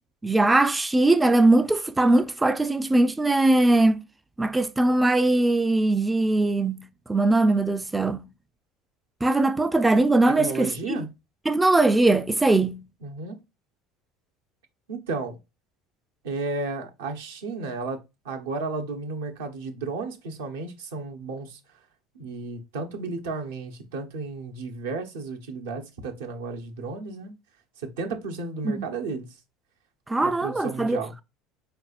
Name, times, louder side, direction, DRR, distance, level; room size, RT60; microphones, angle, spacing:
voice 1, 0.2-4.0 4.4-6.8 7.1-8.2 9.2-11.1 11.5-12.8 28.6-28.8 30.1-31.2, right 2 dB, 15° right, 0.3 m, -21 dB
voice 2, 10.4-11.1 13.0-13.4 14.9-15.4 16.2-18.0 18.2-21.6 22.1-27.3 27.8-29.3 30.2-31.1, right 3 dB, 80° right, 0.9 m, -33 dB
4.0 x 3.4 x 2.4 m
hypercardioid pair, 80°, 0 cm